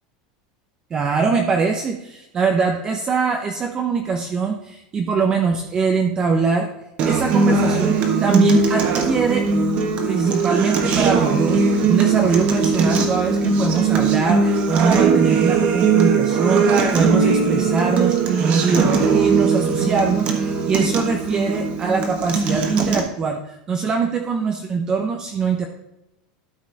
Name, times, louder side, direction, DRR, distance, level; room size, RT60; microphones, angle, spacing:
voice 1, 0.9-6.7 7.0-9.5 10.0-25.7, right 5 dB, 20° right, 3 dB, 0.7 m, -22 dB
Acoustic guitar, 7.0-23.0, right 5 dB, 35° right, 1.5 m, -19 dB
12.5 x 5.5 x 4.1 m, 0.93 s
supercardioid pair, 165°, 4 cm